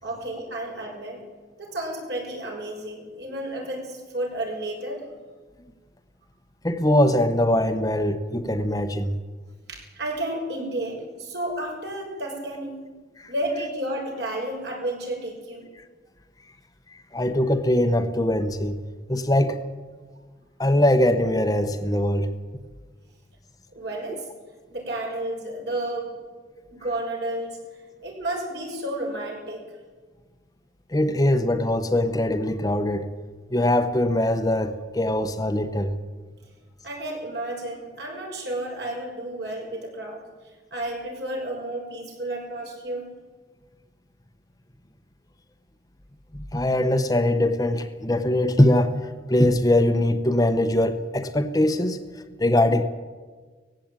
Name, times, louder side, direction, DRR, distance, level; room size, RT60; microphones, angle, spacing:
voice 1, 0.0-1.2 1.6-5.0 9.7-12.8 13.3-15.7 23.7-24.3 24.7-26.1 26.7-27.6 28.0-29.6 36.8-40.2 40.7-43.1, right 1 dB, 65° right, 6.2 m, -31 dB
voice 2, 6.6-9.2 13.2-13.3 16.9-18.8 19.1-19.6 20.6-22.3 24.1-24.2 30.9-33.1 33.5-36.0 46.3-52.9, left 1 dB, 20° left, 1.0 m, -22 dB
18.5 x 15.5 x 8.9 m
head